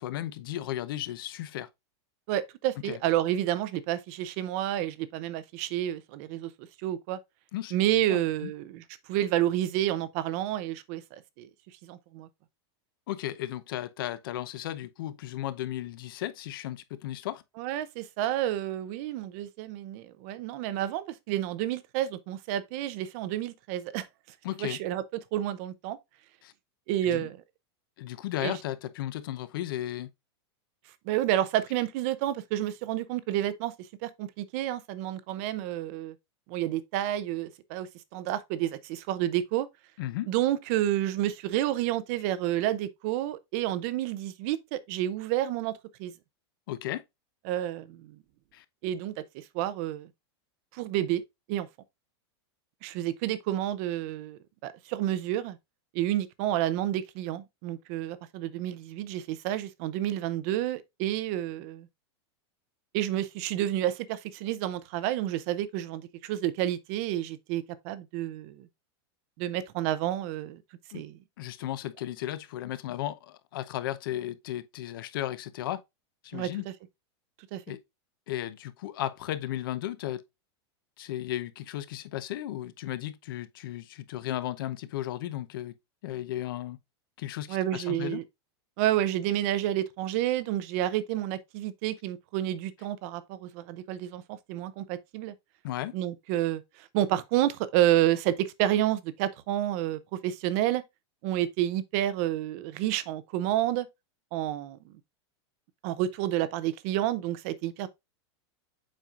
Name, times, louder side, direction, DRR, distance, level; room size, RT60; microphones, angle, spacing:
voice 1, 0.0-1.7 2.8-3.0 7.5-7.8 8.1-8.5 13.1-17.4 24.4-24.8 26.4-26.5 27.0-27.3 28.0-30.1 40.0-40.3 46.7-47.0 48.5-48.6 70.9-71.0 71.4-75.8 76.2-76.7 77.7-77.8 78.3-80.2 81.0-85.7 86.0-86.8 87.2-88.2 95.6-95.9, left 13 dB, 50° left, 0.7 m, -35 dB
voice 2, 2.3-6.5 6.8-7.2 7.7-8.8 9.1-11.5 11.8-12.3 17.6-24.1 24.6-25.0 25.3-26.0 26.9-27.4 28.4-28.6 31.1-33.7 34.0-36.1 36.5-39.7 40.3-46.1 47.5-48.2 48.8-49.1 49.5-50.1 50.7-51.2 51.5-51.7 52.8-55.6 55.9-61.9 62.9-68.7 69.4-70.6 70.9-71.2 76.3-76.5 77.5-77.8 87.5-88.2 88.8-94.2 94.5-95.3 95.9-100.8 101.2-103.9 104.3-104.8 105.8-107.9, right 13 dB, 30° right, 0.6 m, -30 dB
7.4 x 5.3 x 2.4 m
supercardioid pair, 180°, 14 cm